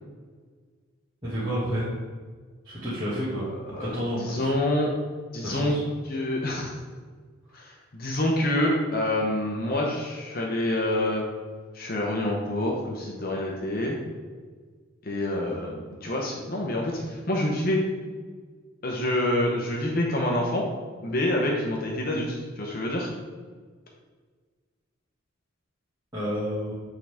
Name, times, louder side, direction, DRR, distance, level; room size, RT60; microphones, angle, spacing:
voice 1, 1.2-1.9 2.6-3.5 3.8-4.5 5.4-5.8 26.1-26.7, equal, 20° right, -12 dB, 1.9 m, -30 dB
voice 2, 3.7-4.9 5.3-5.8 6.1-6.7 7.5-11.2 11.7-14.0 15.0-17.8 18.8-20.7 21.0-23.1, left 1 dB, 45° left, -1 dB, 0.9 m, -27 dB
9.1 x 3.8 x 3.5 m, 1.5 s
head